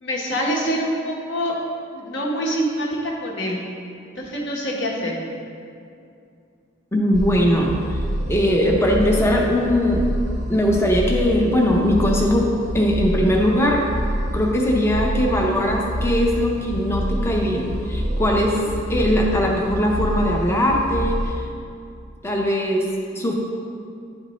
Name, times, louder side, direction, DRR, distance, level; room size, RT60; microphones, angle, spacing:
voice 1, 0.0-1.6 1.9-3.6 4.2-5.2, equal, 60° left, -2 dB, 1.1 m, -25 dB
voice 2, 6.9-8.0 8.3-10.1 10.5-13.8 14.3-21.4 22.2-22.9 23.1-23.3, equal, 10° left, -1 dB, 0.6 m, -20 dB
sound 1, 7.1-21.4, equal, 35° right, 0.6 m, -27 dB
10.5 x 4.3 x 3.0 m, 2.4 s
head